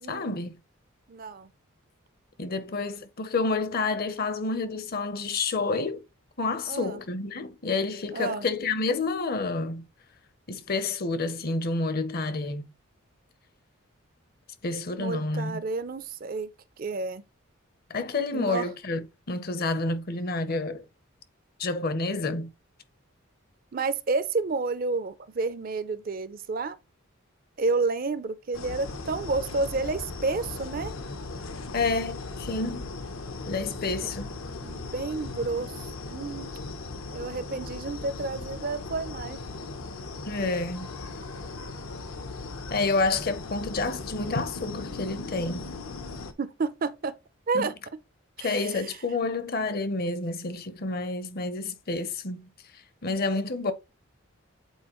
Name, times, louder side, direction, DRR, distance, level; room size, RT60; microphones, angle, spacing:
voice 1, 0.1-0.6 2.4-6.0 6.4-9.8 10.5-12.6 14.6-15.6 17.9-20.8 21.6-22.5 31.7-32.9 33.4-34.3 40.2-40.9 42.7-45.6 47.5-47.7 48.4-52.4 53.0-53.7, left 3 dB, 45° left, 0.7 m, -29 dB
voice 2, 1.1-1.5 6.7-7.0 8.1-8.5 15.0-16.5 16.8-17.2 18.3-18.7 23.7-26.8 27.6-30.9 34.0-34.1 34.6-35.7 36.1-36.5 37.1-39.4 46.4-47.1 47.5-47.7 48.4-49.0, right 3 dB, 45° right, 0.5 m, -30 dB
sound 1, 28.5-46.3, left 3 dB, 75° left, 0.8 m, -38 dB
8.2 x 4.0 x 3.0 m
head